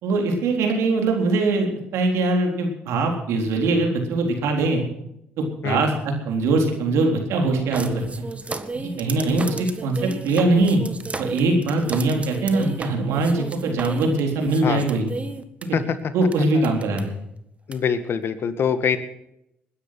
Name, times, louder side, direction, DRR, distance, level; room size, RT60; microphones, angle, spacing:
voice 1, 0.0-4.8 5.6-8.3 9.0-10.8 11.2-15.1 15.6-15.8 16.1-17.1, right 2 dB, 75° right, 3 dB, 3.8 m, -22 dB
sound 1, 7.7-15.6 16.3-16.4 16.6-17.0 17.7-17.8, right 3 dB, 25° right, 1.6 m, -33 dB
voice 2, 17.7-19.0, left 7 dB, 55° left, 10 dB, 1.8 m, -24 dB
20.5 x 10.0 x 6.0 m, 0.80 s
supercardioid pair, 60°, 5 cm